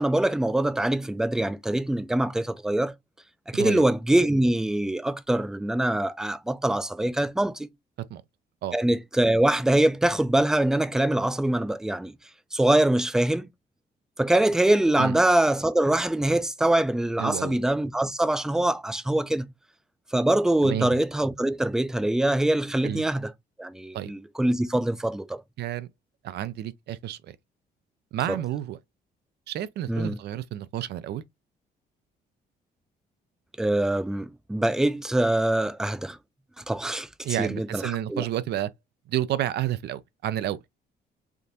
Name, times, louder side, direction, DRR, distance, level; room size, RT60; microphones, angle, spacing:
voice 1, 0.0-2.9 3.5-7.7 8.7-12.1 12.5-13.5 14.2-19.5 20.1-23.3 23.6-25.4 28.3-28.4 29.9-30.2 33.6-36.2 36.6-37.1 37.4-38.2, right 1 dB, 5° right, 0.4 m, -24 dB
voice 2, 3.5-3.8 8.1-8.2 8.6-8.7 15.0-15.1 17.2-17.6 20.6-20.9 22.8-23.1 23.9-24.1 25.6-25.9 26.2-27.4 28.1-28.8 29.5-31.2 37.2-38.7 39.1-40.6, right 12 dB, 65° right, 0.5 m, -30 dB
3.6 x 2.5 x 2.7 m
cardioid pair, 85°, 18 cm